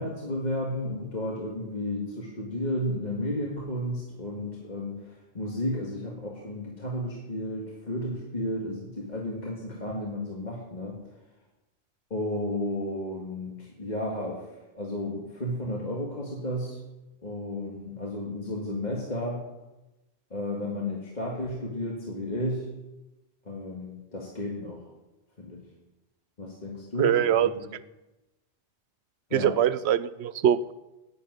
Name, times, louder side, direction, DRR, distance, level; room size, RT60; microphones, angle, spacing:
voice 1, 0.0-5.1 5.3-11.0 12.1-14.5 14.7-16.8 17.2-19.5 20.3-22.7 23.5-24.8 25.4-25.6 26.4-27.7 29.3-29.6, left 1 dB, 45° left, -2 dB, 2.0 m, -33 dB
voice 2, 27.0-27.5 29.3-30.7, right 10 dB, 80° right, 16 dB, 0.9 m, -23 dB
10.0 x 8.6 x 9.3 m, 1.0 s
omnidirectional pair, 1.1 m